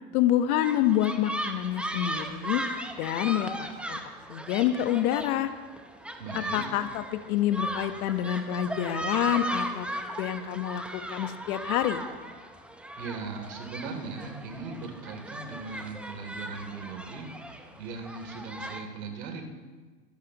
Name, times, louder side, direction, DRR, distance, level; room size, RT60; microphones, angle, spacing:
voice 1, 0.1-2.6 3.0-4.0 4.3-5.5 6.3-9.9 10.2-12.0, left 12 dB, 55° left, 10 dB, 1.3 m, -27 dB
sound 1, 0.6-18.8, right 1 dB, ahead, 0.8 m, -37 dB
voice 2, 6.2-6.7 13.0-19.5, right 4 dB, 75° right, 4 dB, 3.1 m, -39 dB
24.5 x 12.5 x 3.0 m, 1.4 s
hypercardioid pair, 115°, 50 cm